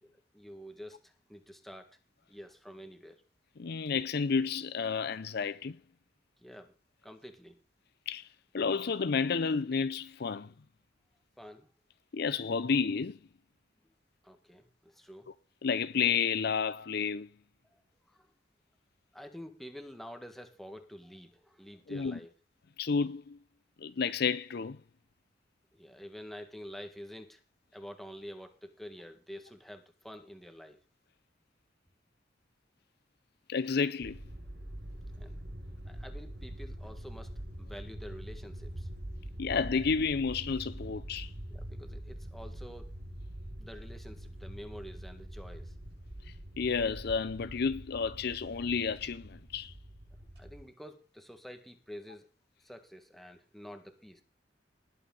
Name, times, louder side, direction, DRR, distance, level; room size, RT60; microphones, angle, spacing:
voice 1, 0.0-2.0 2.3-3.2 6.4-6.7 7.0-7.6 11.4-11.7 14.2-15.3 17.6-18.3 19.1-22.3 25.7-27.4 27.7-30.8 35.2-35.4 35.8-38.9 41.5-42.9 43.6-45.7 50.3-52.3 52.6-54.2, equal, ahead, 1.8 m, -48 dB
voice 2, 3.6-5.8 8.1-8.3 8.5-10.5 12.1-13.2 15.6-17.3 21.9-22.2 22.8-23.4 23.8-24.8 33.5-34.2 39.4-41.3 46.6-49.7, left 5 dB, 60° left, 0.5 m, -31 dB
sound 1, 34.0-50.6, right 1 dB, 70° right, 6.7 m, -44 dB
19.5 x 8.4 x 4.0 m
head